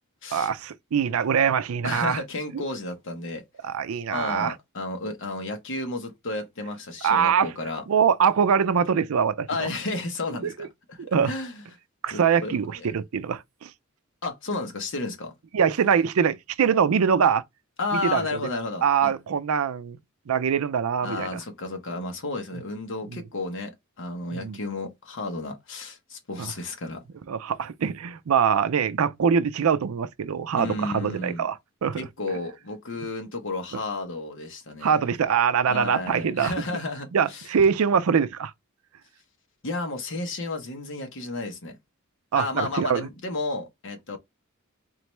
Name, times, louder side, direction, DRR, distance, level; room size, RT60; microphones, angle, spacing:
voice 1, 0.3-2.2 2.5-2.6 3.6-4.5 7.0-7.5 7.9-9.7 10.4-10.7 11.0-11.3 12.0-13.7 15.5-17.4 17.9-18.4 18.8-20.0 20.3-21.4 23.1-23.2 24.3-24.6 26.4-26.5 27.3-31.6 31.8-32.1 34.8-36.5 37.1-38.5 42.3-43.1, right 7 dB, 85° right, 0.4 m, -23 dB
voice 2, 1.8-3.4 4.1-7.8 9.5-11.0 11.2-11.6 12.1-12.9 14.2-15.3 17.8-19.1 21.0-27.0 30.6-31.5 32.0-35.0 35.7-37.5 39.6-41.8 42.4-44.2, left 2 dB, 65° left, 1.1 m, -32 dB
3.9 x 3.0 x 3.3 m
head